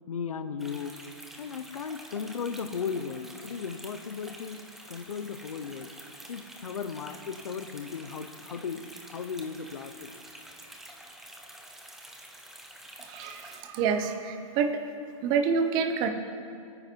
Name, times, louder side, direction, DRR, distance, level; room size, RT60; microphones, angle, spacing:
voice 1, 0.1-1.0 1.4-4.6 4.9-5.9 6.3-10.1, left 6 dB, 85° left, 10 dB, 1.1 m, -36 dB
sound 1, 0.6-13.6, right 1 dB, ahead, 0.8 m, -48 dB
voice 2, 13.0-14.8 15.2-16.1, right 6 dB, 25° right, 7 dB, 1.1 m, -27 dB
24.0 x 9.7 x 4.7 m, 2.5 s
hypercardioid pair, 155°, 17 cm